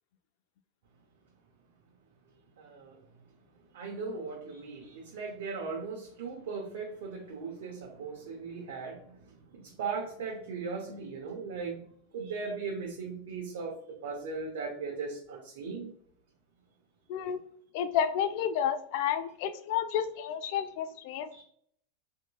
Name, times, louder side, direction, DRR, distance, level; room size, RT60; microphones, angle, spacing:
voice 1, 2.6-3.0 3.7-9.2 9.8-11.8 12.1-13.7 14.0-15.9 21.3-21.4, right 4 dB, 75° right, -2 dB, 0.8 m, -38 dB
voice 2, 17.1-17.4 17.7-21.3, left 9 dB, 60° left, 10 dB, 0.4 m, -30 dB
3.5 x 2.9 x 2.2 m, 0.64 s
hypercardioid pair, 110°, 0 cm